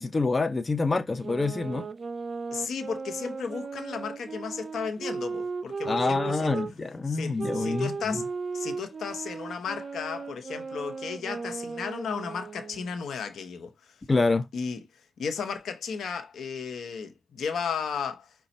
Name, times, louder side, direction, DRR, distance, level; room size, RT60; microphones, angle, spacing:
voice 1, 0.0-1.9 5.9-8.2 14.1-14.4, left 3 dB, 40° left, 0.5 m, -26 dB
sound 1, 1.2-6.7 7.4-12.9, right 4 dB, 55° right, 0.4 m, -36 dB
voice 2, 2.5-6.7 7.1-14.0 14.5-14.8 15.2-18.3, left 6 dB, 85° left, 0.8 m, -34 dB
5.1 x 2.2 x 4.1 m
cardioid pair, 50°, 0 cm